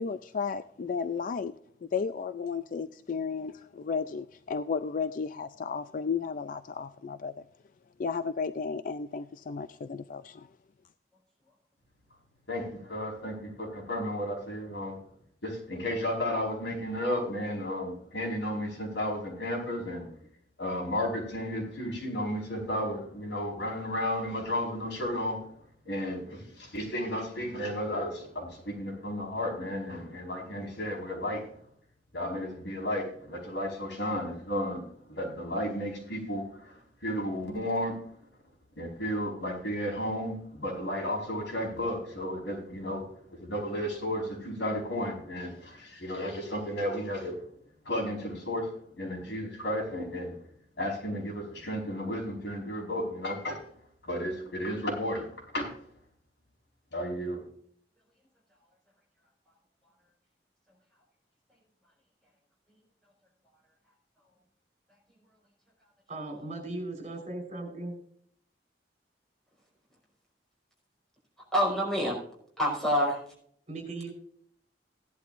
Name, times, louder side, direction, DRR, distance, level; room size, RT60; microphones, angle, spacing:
voice 1, 0.0-7.4 8.0-10.5, left 5 dB, 50° left, 12 dB, 0.4 m, -33 dB
voice 2, 12.5-15.0 15.4-20.2 20.6-25.6 25.8-31.6 32.1-38.2 38.8-47.5 47.8-50.4 50.8-53.7 54.0-55.9 56.9-57.4, equal, 85° left, -1 dB, 4.8 m, -33 dB
voice 3, 66.1-68.0 73.7-74.1, right 2 dB, 40° right, 3 dB, 4.4 m, -38 dB
voice 4, 71.5-72.2 72.6-73.2, equal, 5° left, -3 dB, 5.1 m, -26 dB
16.5 x 11.0 x 2.6 m, 0.63 s
head